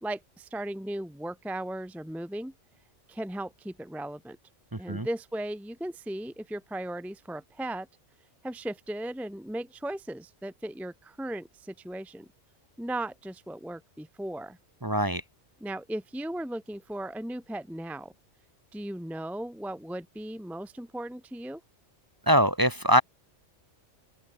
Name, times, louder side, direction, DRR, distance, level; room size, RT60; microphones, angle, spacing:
voice 1, 0.0-2.5 3.1-4.4 4.8-7.9 8.4-12.3 12.8-14.6 15.6-18.1 18.7-21.6, right 1 dB, ahead, 0.8 m, -36 dB
voice 2, 4.7-5.1 14.8-15.2 22.3-23.0, equal, 20° right, 1.0 m, -23 dB
open air
omnidirectional pair, 1.2 m